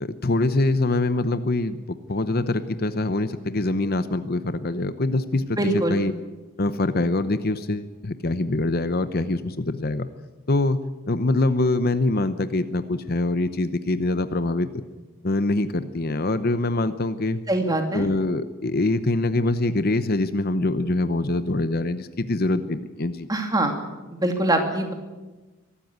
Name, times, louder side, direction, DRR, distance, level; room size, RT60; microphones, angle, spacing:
voice 1, 0.0-1.8 2.1-6.1 6.6-10.1 10.5-10.8 11.1-14.7 15.2-17.4 17.9-23.3, left 2 dB, 45° left, 12 dB, 0.8 m, -24 dB
voice 2, 5.6-6.0 17.5-18.1 23.3-23.8 24.1-24.9, right 1 dB, 15° right, 4 dB, 2.7 m, -23 dB
23.5 x 13.0 x 9.5 m, 1.2 s
head